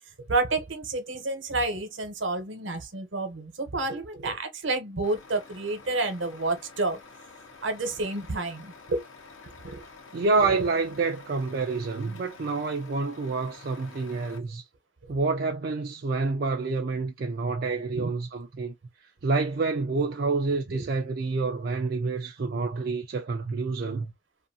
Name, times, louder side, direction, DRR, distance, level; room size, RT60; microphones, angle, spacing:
voice 1, 0.3-7.0 7.6-9.0 9.6-9.8 10.4-10.6 17.9-18.1 20.7-20.9, right 2 dB, 70° right, 0.9 m, -30 dB
Truck, 5.0-14.4, left 4 dB, 75° left, 0.9 m, -49 dB
voice 2, 10.1-14.6 15.1-18.7 19.2-24.1, right 3 dB, 50° right, 0.4 m, -28 dB
2.6 x 2.5 x 2.6 m
head